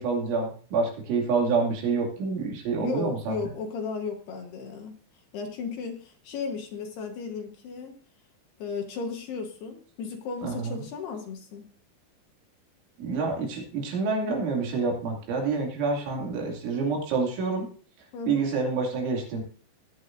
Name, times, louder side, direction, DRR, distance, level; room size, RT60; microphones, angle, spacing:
voice 1, 0.0-3.3 10.4-10.8 13.0-17.7 18.3-19.4, right 4 dB, 75° right, 0 dB, 5.0 m, -27 dB
voice 2, 2.8-4.9 5.3-8.0 8.6-11.7 16.0-16.5 18.1-18.5, left 5 dB, 65° left, 3 dB, 3.0 m, -35 dB
19.5 x 9.7 x 2.7 m, 0.41 s
omnidirectional pair, 5.6 m